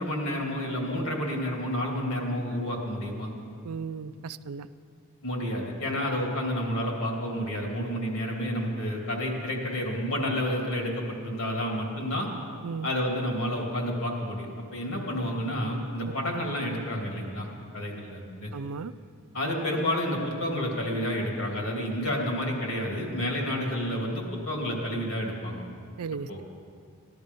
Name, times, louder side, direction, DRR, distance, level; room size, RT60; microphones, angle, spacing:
voice 1, 0.0-3.3 5.2-12.3 12.8-17.5 17.7-18.5 19.3-25.6 26.3-26.4, equal, 65° left, 0 dB, 2.6 m, -30 dB
voice 2, 3.6-4.7 12.6-12.9 18.5-18.9 26.0-26.4, right 5 dB, 80° right, 14 dB, 0.4 m, -35 dB
16.0 x 11.5 x 5.4 m, 2.3 s
head